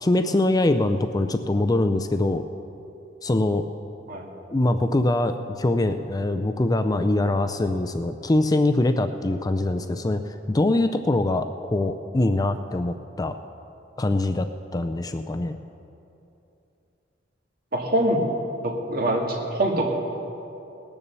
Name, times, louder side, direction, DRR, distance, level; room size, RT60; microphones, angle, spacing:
voice 1, 0.0-2.4 3.2-3.6 4.5-13.3 14.0-14.5 14.7-15.6, left 2 dB, 20° left, 8 dB, 0.4 m, -23 dB
voice 2, 17.7-18.2 18.6-19.9, right 1 dB, 55° right, 0 dB, 2.1 m, -24 dB
19.5 x 7.1 x 6.8 m, 2.8 s
head